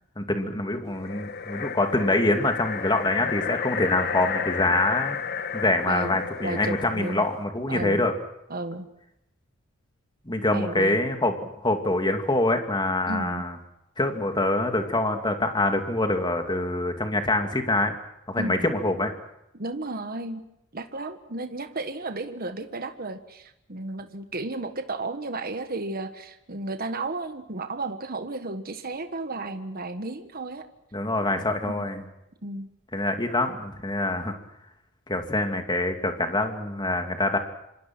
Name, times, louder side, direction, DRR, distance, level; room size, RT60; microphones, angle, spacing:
voice 1, 0.2-5.2 5.5-8.1 10.3-13.5 14.0-17.9 18.3-19.1 30.9-32.0 32.9-34.3 35.1-37.4, left 2 dB, 20° left, 5 dB, 2.6 m, -25 dB
sound 1, 0.9-7.4, left 6 dB, 50° left, 1.2 m, -32 dB
voice 2, 5.9-7.3 7.7-8.1 8.5-8.9 10.5-11.0 13.1-13.4 18.4-18.7 19.5-20.4 20.7-30.7 31.6-31.9 32.4-32.7, right 2 dB, 45° right, 8 dB, 1.5 m, -33 dB
26.5 x 25.5 x 6.1 m, 0.83 s
head